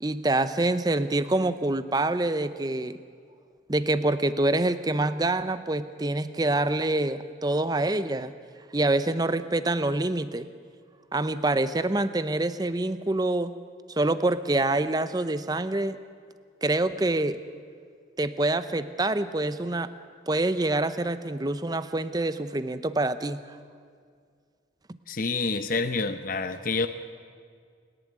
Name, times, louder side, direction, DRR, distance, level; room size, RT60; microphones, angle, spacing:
voice 1, 0.0-3.0 3.7-8.3 8.7-10.5 11.1-13.5 14.0-16.0 16.6-17.4 18.2-19.9 20.3-23.6, right 2 dB, 20° right, 13 dB, 0.6 m, -26 dB
voice 2, 25.1-26.9, left 4 dB, 45° left, 8 dB, 0.8 m, -28 dB
29.0 x 11.0 x 9.4 m, 2.1 s
head